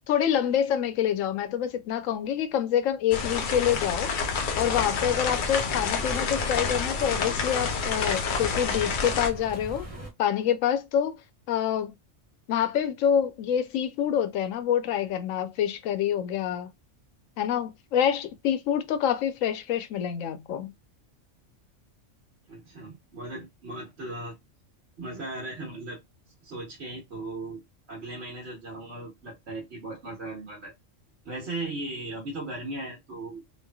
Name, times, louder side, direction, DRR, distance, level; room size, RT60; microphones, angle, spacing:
voice 1, 0.1-4.1 4.6-9.9 10.2-11.2 11.5-11.9 12.5-16.7 17.4-20.7, left 9 dB, 85° left, 1.0 m, -26 dB
sound 1, 3.1-9.3, left 5 dB, 60° left, 0.5 m, -28 dB
sound 2, 4.3-10.1, equal, 30° right, 1.1 m, -41 dB
voice 2, 22.5-24.4 25.0-26.0 26.4-27.6 27.9-30.7 31.2-33.6, right 2 dB, 60° right, 1.2 m, -37 dB
3.1 x 2.5 x 2.2 m
omnidirectional pair, 1.3 m